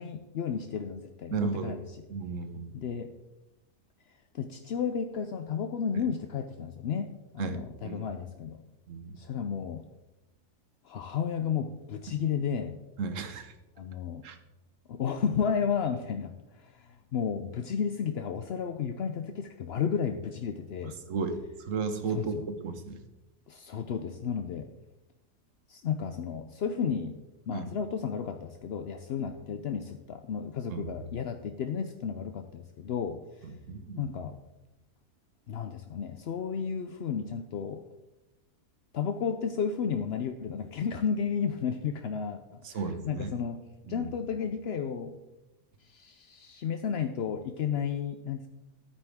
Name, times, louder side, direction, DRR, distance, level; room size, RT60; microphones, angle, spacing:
voice 1, 0.0-1.8 2.7-3.1 4.3-8.6 9.2-9.9 10.8-12.8 13.8-14.3 14.9-21.0 22.1-22.4 23.5-24.7 25.7-27.2 27.5-33.5 34.0-34.3 35.5-37.8 38.9-43.6 43.9-45.2 45.8-48.5, left 7 dB, 65° left, 7 dB, 0.6 m, -33 dB
voice 2, 1.3-1.7 2.1-2.7 6.0-6.1 7.4-8.0 8.9-9.2 13.0-13.5 14.2-14.4 21.1-23.0 27.5-27.7 30.7-31.0 33.4-34.1 42.6-43.3 43.9-44.1, right 5 dB, 55° right, 8 dB, 1.3 m, -34 dB
13.0 x 9.0 x 3.6 m, 0.99 s
omnidirectional pair, 1.7 m